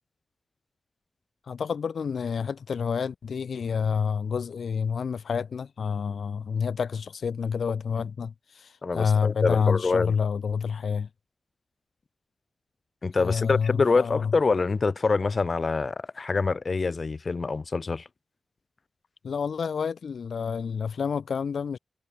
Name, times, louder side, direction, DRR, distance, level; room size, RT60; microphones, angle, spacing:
voice 1, 1.5-11.1 13.2-14.3 19.2-21.8, left 6 dB, 90° left, 0.8 m, -28 dB
voice 2, 8.8-10.1 13.0-18.1, left 4 dB, 60° left, 0.6 m, -25 dB
cardioid pair, 40°, 0 cm